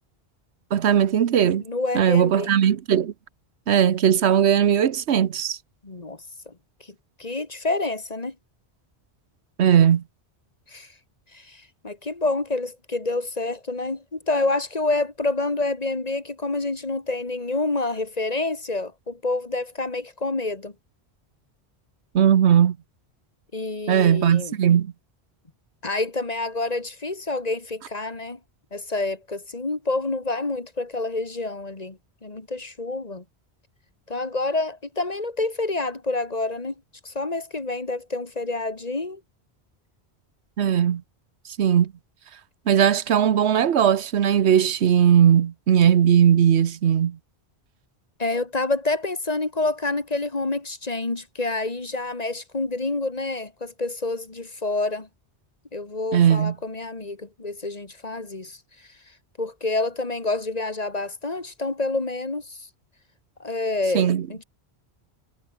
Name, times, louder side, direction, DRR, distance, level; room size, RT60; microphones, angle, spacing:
voice 1, 0.7-1.6 1.9-3.1 3.7-5.6 9.6-10.0 22.1-22.8 23.9-24.9 40.6-41.0 41.6-41.9 42.7-47.2 56.1-56.5 63.9-64.3, right 9 dB, 85° right, 1.2 m, -18 dB
voice 2, 1.6-2.5 5.8-6.5 7.2-8.4 10.7-10.9 11.3-20.7 23.5-24.6 25.8-28.4 28.7-33.2 34.1-36.7 37.0-39.2 48.2-55.1 55.7-58.6 59.4-62.7 63.4-64.4, left 2 dB, 35° left, 2.0 m, -28 dB
omnidirectional pair, 1.1 m